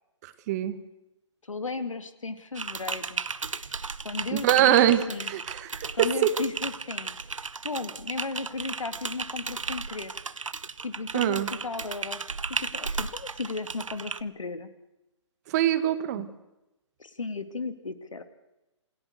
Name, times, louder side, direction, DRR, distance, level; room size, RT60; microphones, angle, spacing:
voice 1, 0.2-0.8 4.3-6.3 11.1-11.5 15.5-16.3, right 12 dB, 35° right, 11 dB, 1.7 m, -24 dB
voice 2, 1.5-3.2 3.7-4.8 5.1-5.3 5.9-7.1 7.6-10.1 10.8-12.3 12.6-14.7 16.2-16.3 17.0-18.2, left 3 dB, 85° left, 10 dB, 2.3 m, -35 dB
Typing, 2.6-14.2, right 4 dB, 85° right, 1.0 m, -35 dB
28.0 x 18.0 x 6.6 m, 0.96 s
hypercardioid pair, 140°, 16 cm